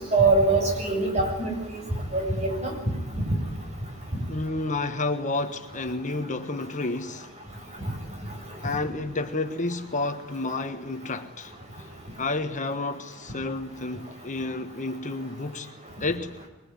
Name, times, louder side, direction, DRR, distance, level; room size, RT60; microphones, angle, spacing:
voice 1, 0.1-1.5 2.1-2.7, right 3 dB, 30° right, 7.7 m, -22 dB
voice 2, 4.3-7.3 8.6-11.5 12.2-15.7 16.0-16.4, left 2 dB, 35° left, 1.3 m, -30 dB
25.0 x 21.5 x 9.6 m
head